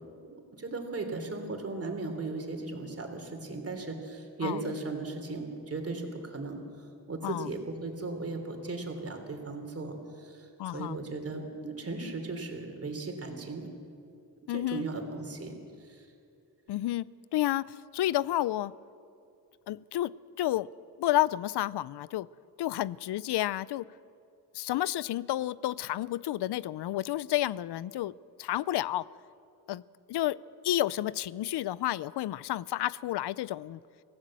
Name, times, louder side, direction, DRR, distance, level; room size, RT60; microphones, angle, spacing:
voice 1, 0.5-6.6 7.1-13.7 14.5-15.5 15.8-16.1, right 3 dB, 35° right, 4 dB, 3.2 m, -37 dB
voice 2, 10.6-11.0 14.5-14.9 16.7-18.7 19.7-20.7 21.0-22.3 22.6-23.9 24.5-28.1 28.4-29.1 29.7-29.8 30.1-33.8, left 14 dB, 85° left, 20 dB, 0.5 m, -31 dB
25.0 x 17.0 x 7.5 m, 2.5 s
wide cardioid pair, 135°, 39 cm